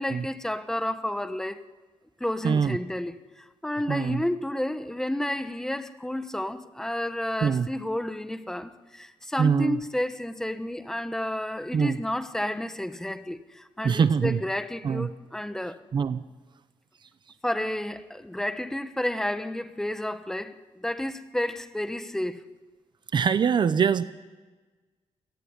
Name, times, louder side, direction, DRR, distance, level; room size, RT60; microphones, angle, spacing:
voice 1, 0.0-1.6 2.2-15.8 17.4-22.4, left 1 dB, 5° left, 1.1 m, -31 dB
voice 2, 2.4-2.8 3.9-4.2 7.4-7.7 9.4-9.8 11.7-12.0 13.8-14.4 14.8-15.1 15.9-16.2 23.1-24.0, right 6 dB, 45° right, 0.8 m, -23 dB
28.0 x 18.5 x 9.7 m
wide cardioid pair, 155°, 11 cm